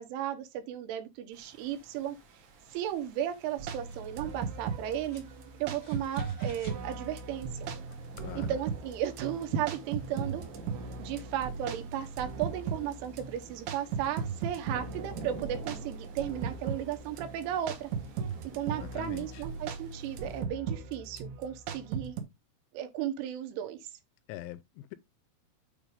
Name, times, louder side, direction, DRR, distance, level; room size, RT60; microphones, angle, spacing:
voice 1, 0.0-2.2 2.7-5.2 5.6-7.7 8.4-10.4 11.0-17.9 18.6-22.2 22.7-23.8, right 10 dB, 90° right, 3.7 m, -35 dB
sound 1, 1.3-20.4, right 4 dB, 55° right, 2.2 m, -50 dB
sound 2, 1.4-6.9, equal, 50° left, 1.0 m, -54 dB
sound 3, 3.6-22.2, right 6 dB, 75° right, 3.4 m, -38 dB
voice 2, 8.2-8.6 18.8-19.4 24.3-25.0, left 13 dB, 85° left, 2.7 m, -43 dB
8.8 x 3.2 x 5.2 m
omnidirectional pair, 5.5 m